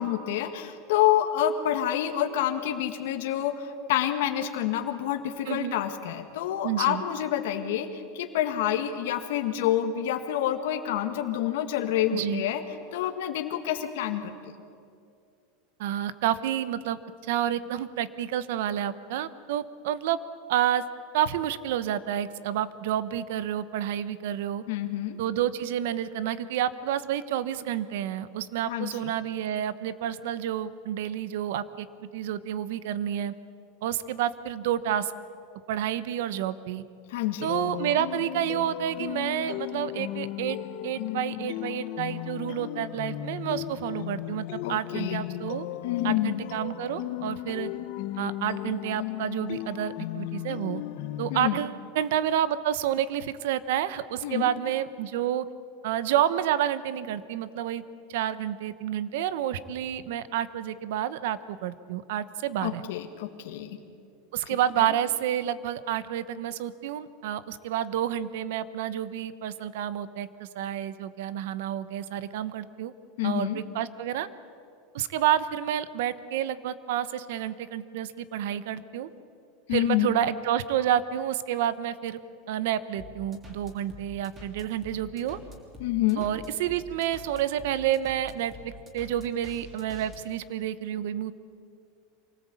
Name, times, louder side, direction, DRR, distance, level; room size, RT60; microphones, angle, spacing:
voice 1, 0.0-12.6 12.9-14.5 24.7-25.2 28.7-29.1 37.1-37.5 44.6-45.2 45.8-46.4 51.3-51.6 54.2-54.5 62.6-63.8 64.5-64.9 73.2-73.6 79.7-80.1 85.8-86.2, left 11 dB, 70° left, 5 dB, 1.8 m, -28 dB
voice 2, 6.6-7.0 12.1-12.4 15.8-20.2 20.5-20.8 21.1-24.6 25.2-31.9 32.1-33.3 33.8-35.1 35.7-36.8 37.4-40.6 40.8-45.7 46.0-47.7 48.2-50.8 51.2-55.5 55.8-57.8 58.1-62.8 64.3-72.9 73.2-74.3 74.9-79.1 79.7-82.2 82.5-85.4 86.2-91.3, right 11 dB, 70° right, 15 dB, 1.0 m, -29 dB
sound 1, 37.5-51.5, left 14 dB, 55° left, 0.8 m, -35 dB
sound 2, 83.0-90.2, left 1 dB, 20° right, 3.3 m, -46 dB
24.5 x 18.5 x 8.5 m, 2.4 s
supercardioid pair, 165°, 0 cm